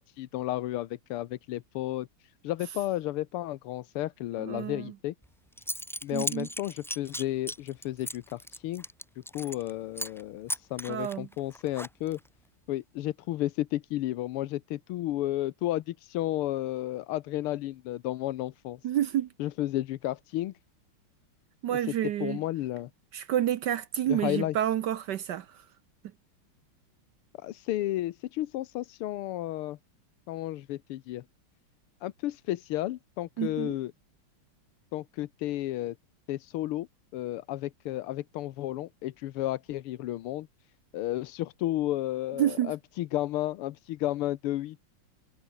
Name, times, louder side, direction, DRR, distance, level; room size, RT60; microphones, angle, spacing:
voice 1, 0.0-5.2 6.0-8.8 9.3-12.2 12.7-18.8 19.4-20.5 21.7-21.9 22.2-22.9 24.1-24.6 27.4-29.8 30.3-31.2 32.0-33.9 34.9-36.0 36.3-36.9 37.1-40.5 40.9-44.8, left 15 dB, 90° left, 1.7 m, -32 dB
voice 2, 4.4-4.9 6.1-6.5 10.9-11.3 18.8-19.3 21.6-22.4 23.1-25.5 33.4-33.7 42.4-42.7, right 11 dB, 65° right, 1.2 m, -29 dB
Zipper (clothing) / Coin (dropping), 5.2-5.3 5.6-9.7 10.0-10.2 10.5-12.3, equal, ahead, 1.8 m, -37 dB
omnidirectional pair, 2.4 m